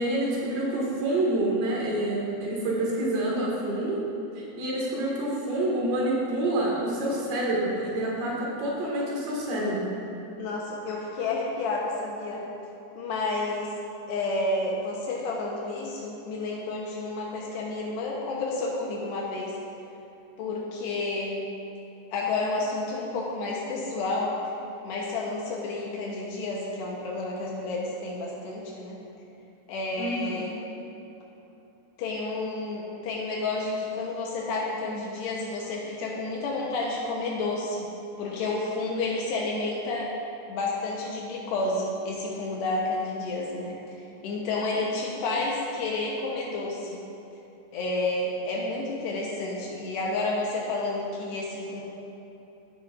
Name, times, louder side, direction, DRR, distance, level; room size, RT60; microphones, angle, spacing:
voice 1, 0.0-4.1 4.4-9.9 30.0-30.4, right 1 dB, 70° right, -4 dB, 4.0 m, -27 dB
voice 2, 10.4-12.5 13.0-13.7 14.1-19.6 20.4-21.4 22.1-24.3 24.8-29.0 29.7-30.6 32.0-37.9 38.2-40.1 40.5-43.8 44.2-47.0 47.7-51.8, left 2 dB, 75° left, -2 dB, 2.8 m, -30 dB
16.5 x 9.4 x 2.6 m, 3.0 s
omnidirectional pair, 5.5 m